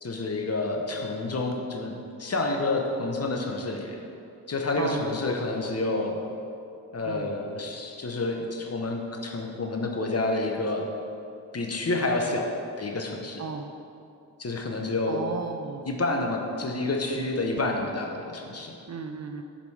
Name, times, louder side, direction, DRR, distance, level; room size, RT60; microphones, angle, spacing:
voice 1, 0.0-4.0 4.5-6.2 6.9-10.9 11.5-12.5 12.8-13.5 14.4-15.3 15.8-18.7, left 2 dB, 35° left, 2 dB, 0.9 m, -29 dB
voice 2, 15.1-15.8 18.9-19.4, right 5 dB, 40° right, 5 dB, 0.5 m, -34 dB
5.1 x 5.1 x 4.7 m, 2.6 s
supercardioid pair, 45°, 41 cm